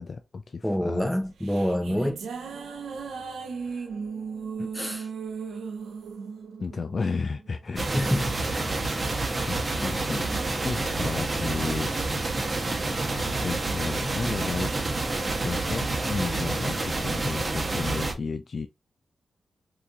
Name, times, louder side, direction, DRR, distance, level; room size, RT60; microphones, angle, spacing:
voice 1, 0.0-1.1 3.6-3.9 6.6-8.2 9.5-10.3 10.6-11.9 13.4-14.8 15.4-18.7, left 4 dB, 55° left, 0.4 m, -33 dB
voice 2, 0.6-2.2 4.6-5.1 7.9-8.7, equal, 5° left, 0.7 m, -27 dB
sound 1, 1.2-7.8, right 5 dB, 85° right, 0.5 m, -37 dB
sound 2, 7.8-18.1, right 2 dB, 40° right, 1.0 m, -28 dB
2.8 x 2.5 x 3.6 m
cardioid pair, 50°, 0 cm